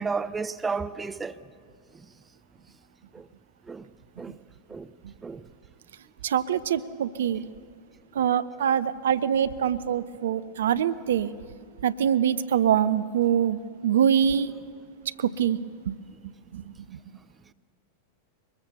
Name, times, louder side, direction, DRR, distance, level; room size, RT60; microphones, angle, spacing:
voice 1, 0.0-1.3 3.1-3.3 3.7-3.9 4.2-4.4 4.7-4.9 5.2-5.4, right 4 dB, 15° right, 0.6 m, -32 dB
voice 2, 6.2-7.4 8.1-11.3 11.8-14.5 15.2-15.6 15.9-16.0 16.5-17.0, right 9 dB, 60° right, 0.6 m, -24 dB
23.0 x 21.0 x 6.9 m
figure-of-eight pair, 90°, 0 cm